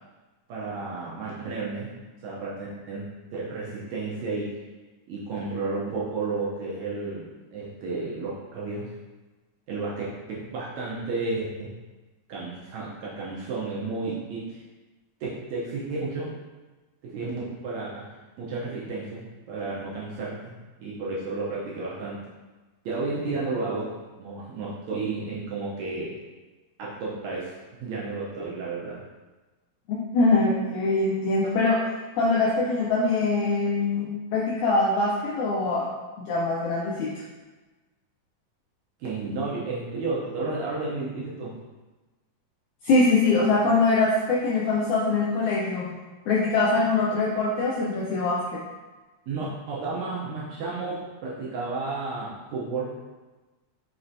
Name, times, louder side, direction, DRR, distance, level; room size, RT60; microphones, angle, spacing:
voice 1, 0.5-1.9 2.2-4.5 5.1-8.9 9.7-11.7 12.3-14.6 15.2-16.4 17.0-18.0 18.4-22.2 22.8-26.2 26.8-29.0 39.0-41.5 49.3-52.9, right 3 dB, 80° right, -6 dB, 1.6 m, -32 dB
voice 2, 29.9-31.8 32.1-35.9 36.3-37.1 42.8-45.9 46.3-48.6, left 3 dB, 85° left, -4 dB, 1.7 m, -23 dB
5.8 x 3.1 x 2.6 m, 1.2 s
omnidirectional pair, 4.0 m